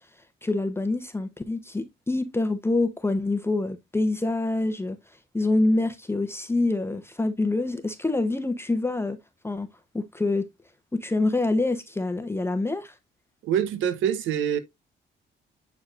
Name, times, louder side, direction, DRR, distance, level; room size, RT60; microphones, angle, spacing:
voice 1, 0.4-9.2 9.4-9.7 9.9-10.4 10.9-13.0, left 2 dB, 10° left, 0.8 m, -26 dB
voice 2, 13.4-14.6, right 9 dB, 80° right, 0.9 m, -25 dB
8.8 x 4.7 x 2.4 m
cardioid pair, 90°, 20 cm